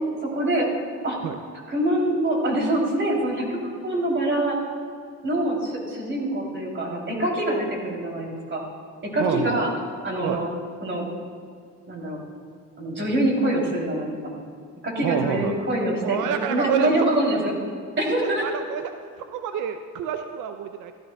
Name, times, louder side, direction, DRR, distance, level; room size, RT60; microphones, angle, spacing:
voice 1, 0.2-0.7 1.0-1.2 1.7-4.6 5.2-8.6 9.0-9.7 10.0-10.5 10.8-11.0 11.9-12.2 12.8-14.1 14.8-17.5 18.0-18.4, right 1 dB, 40° right, -1 dB, 3.0 m, -24 dB
voice 2, 9.2-9.7 10.2-10.4 15.0-15.6 16.0-17.1 18.2-18.9 19.2-20.9, right 9 dB, 90° right, 7 dB, 0.5 m, -28 dB
15.0 x 13.5 x 2.3 m, 2.2 s
cardioid pair, 90°, 30 cm